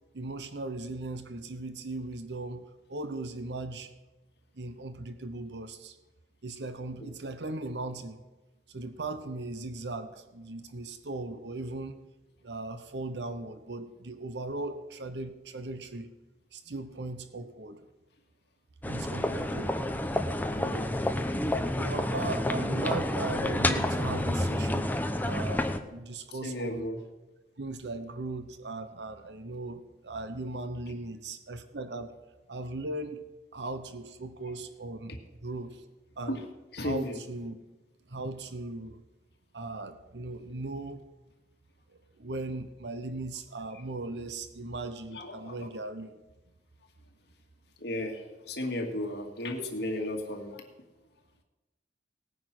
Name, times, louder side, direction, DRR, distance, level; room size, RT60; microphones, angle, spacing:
voice 1, 0.1-3.9 4.5-6.0 6.4-8.2 8.7-12.0 12.4-16.1 16.5-17.8 18.8-19.9 21.7-24.9 25.2-26.9 27.6-32.1 32.5-33.2 33.5-35.1 35.4-35.8 36.2-36.4 36.8-37.6 38.1-39.0 39.5-41.0 41.9-46.2, right 2 dB, 75° right, 10 dB, 1.0 m, -38 dB
sound 1, 18.8-25.8, left 1 dB, 10° left, 0.8 m, -29 dB
voice 2, 20.5-20.9 26.3-27.0 36.3-36.4 36.7-37.2 45.1-45.7 47.8-50.6, left 1 dB, 70° left, 3 dB, 2.2 m, -34 dB
18.5 x 9.3 x 6.1 m, 1.1 s
head